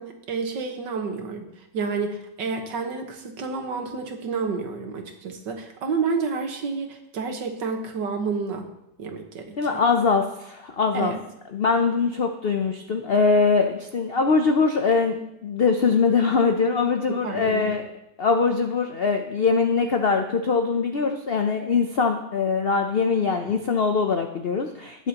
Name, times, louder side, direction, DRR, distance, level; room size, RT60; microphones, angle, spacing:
voice 1, 0.0-8.7 9.0-9.8 10.9-11.2 17.1-17.8, right 4 dB, 75° right, 4 dB, 1.9 m, -30 dB
voice 2, 9.6-11.1 11.5-17.8 18.2-25.1, left 4 dB, 80° left, 5 dB, 0.5 m, -22 dB
19.0 x 6.9 x 2.9 m, 0.84 s
omnidirectional pair, 1.9 m